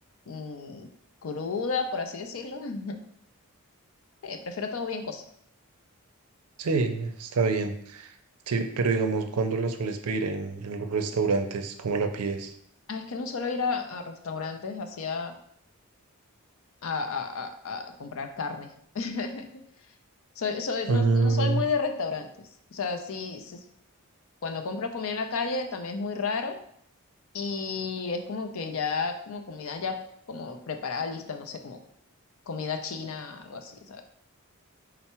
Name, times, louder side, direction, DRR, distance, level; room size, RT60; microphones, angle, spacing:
voice 1, 0.3-0.9 1.2-3.0 4.2-5.2 12.9-15.3 16.8-19.5 20.4-22.3 22.7-23.6 24.4-26.5 27.3-30.0 30.3-31.8 32.5-34.0, left 4 dB, 65° left, 6 dB, 0.5 m, -32 dB
voice 2, 6.6-8.1 8.5-12.5 20.9-21.7, right 4 dB, 85° right, 8 dB, 0.5 m, -26 dB
4.4 x 2.0 x 4.2 m, 0.67 s
head